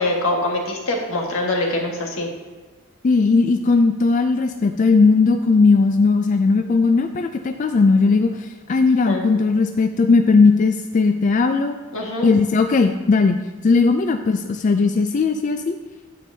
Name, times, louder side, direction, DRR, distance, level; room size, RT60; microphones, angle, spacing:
voice 1, 0.0-2.3 9.1-9.2 11.9-12.3, left 2 dB, 85° left, 0 dB, 1.7 m, -23 dB
voice 2, 3.0-11.8 12.2-15.8, left 4 dB, 40° left, 7 dB, 0.3 m, -17 dB
9.2 x 8.6 x 2.7 m, 1.3 s
head